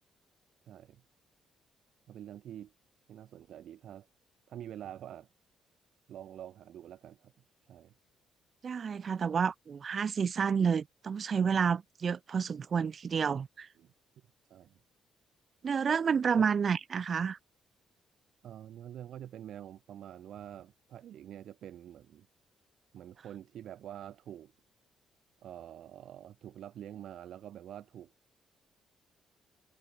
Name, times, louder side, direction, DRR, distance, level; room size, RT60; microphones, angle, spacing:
voice 1, 0.7-1.0 2.1-2.7 3.1-4.1 4.5-5.3 6.1-7.3 7.7-7.9 13.8-13.9 14.5-14.8 16.4-16.5 18.4-22.3 22.9-24.5 25.4-28.1, right 11 dB, 70° right, 1.0 m, -46 dB
voice 2, 8.6-13.7 15.6-17.4, right 6 dB, 45° right, 0.5 m, -30 dB
cardioid pair, 90°, 0 cm